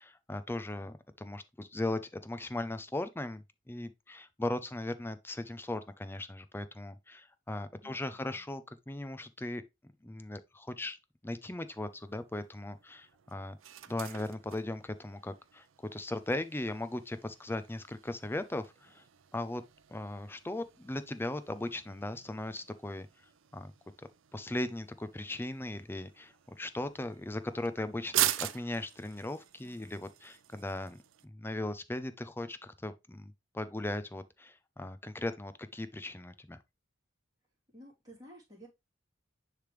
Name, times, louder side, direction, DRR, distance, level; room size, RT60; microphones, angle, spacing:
voice 1, 0.0-9.6 10.0-11.0 11.2-13.6 13.9-19.0 19.3-19.6 19.9-23.1 23.5-23.7 24.0-36.6, left 1 dB, 10° left, 0.5 m, -38 dB
voice 2, 7.8-8.4 29.6-30.0 37.7-38.7, equal, 20° right, 3.0 m, -54 dB
sound 1, 11.7-31.3, right 13 dB, 85° right, 0.5 m, -42 dB
10.0 x 3.4 x 3.1 m
head